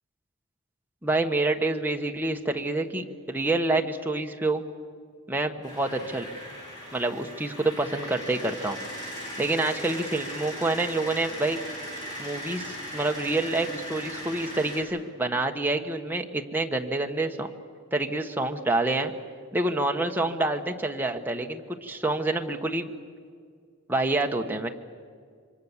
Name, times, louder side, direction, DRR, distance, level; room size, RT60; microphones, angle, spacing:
voice 1, 1.0-4.6 5.3-6.3 6.9-8.8 9.4-11.6 12.2-17.5 17.9-19.1 19.5-22.9 23.9-24.7, right 2 dB, 10° right, 3 dB, 1.2 m, -27 dB
sound 1, 5.6-14.8, equal, 20° left, 7.5 m, -38 dB
27.0 x 24.0 x 7.3 m, 2.1 s
head